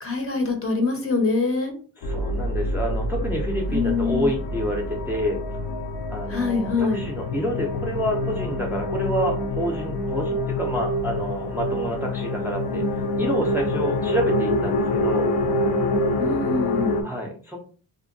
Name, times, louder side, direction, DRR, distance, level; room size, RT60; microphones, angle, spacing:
voice 1, 0.0-1.7 3.7-4.3 6.3-7.0 16.2-17.0, left 4 dB, 35° left, 3 dB, 0.7 m, -24 dB
sound 1, 2.0-17.0, left 1 dB, 85° left, 0.5 m, -26 dB
voice 2, 2.0-5.4 6.1-15.3 17.0-17.6, equal, 5° right, -1 dB, 0.4 m, -28 dB
2.6 x 2.1 x 2.6 m, 0.40 s
cardioid pair, 90°, 38 cm